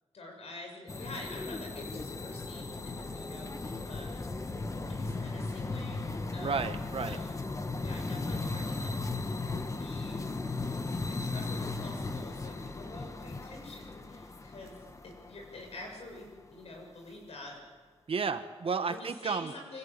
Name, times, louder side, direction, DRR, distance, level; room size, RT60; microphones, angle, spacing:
voice 1, 0.1-4.2 4.9-6.7 7.0-7.4 7.7-9.5 9.8-10.2 11.1-17.6 18.7-19.8, left 2 dB, 75° left, 1 dB, 7.3 m, -47 dB
sound 1, 0.9-16.2, left 3 dB, 30° left, 1.2 m, -37 dB
voice 2, 6.4-7.2 18.1-19.5, right 5 dB, 60° right, 9 dB, 1.2 m, -32 dB
25.0 x 16.0 x 8.9 m, 1.5 s
wide cardioid pair, 135°, 11 cm